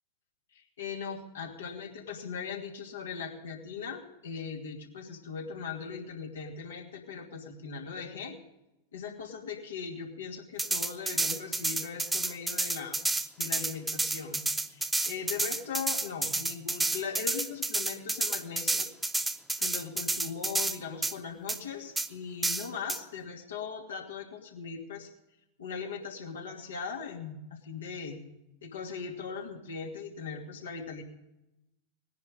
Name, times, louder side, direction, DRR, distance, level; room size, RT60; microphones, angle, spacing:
voice 1, 0.5-8.4 8.9-13.0 13.4-14.4 14.7-18.9 19.6-25.1 25.6-28.2 28.6-31.0, left 6 dB, 65° left, 1 dB, 2.6 m, -39 dB
sound 1, 10.6-20.8 21.0-21.1 21.5-21.6 22.0-22.1 22.4-23.0, right 2 dB, 5° right, 0.8 m, -30 dB
19.5 x 10.5 x 5.2 m, 0.91 s
figure-of-eight pair, 90°, 0 cm